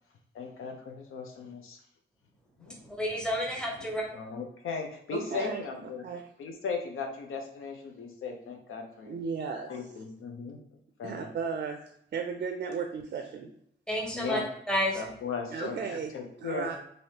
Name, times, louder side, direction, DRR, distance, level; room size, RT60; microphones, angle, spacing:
voice 1, 0.3-1.8 2.6-2.7 4.1-6.0 6.4-9.2 9.7-10.6 11.0-11.3 14.1-14.4 14.9-15.8 16.1-16.7, left 5 dB, 85° left, 3 dB, 0.7 m, -37 dB
voice 2, 2.9-4.0 13.9-14.4 14.7-15.0, equal, 5° left, -1 dB, 0.8 m, -30 dB
voice 3, 5.1-6.2 9.1-9.7 11.0-13.5 15.5-16.1 16.4-16.8, right 5 dB, 50° right, 4 dB, 0.4 m, -35 dB
3.2 x 2.6 x 2.8 m, 0.72 s
cardioid pair, 105°, 21 cm